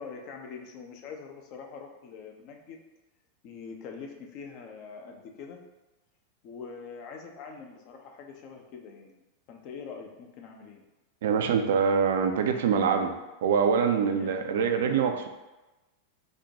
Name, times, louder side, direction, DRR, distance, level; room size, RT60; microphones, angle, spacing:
voice 1, 0.0-2.8 3.4-5.6 6.4-10.8 14.2-14.7, left 5 dB, 40° left, 2 dB, 0.4 m, -44 dB
voice 2, 11.2-13.1 13.4-15.3, right 6 dB, 60° right, 6 dB, 0.3 m, -24 dB
4.2 x 2.1 x 2.7 m, 1.1 s
figure-of-eight pair, 90°, 0 cm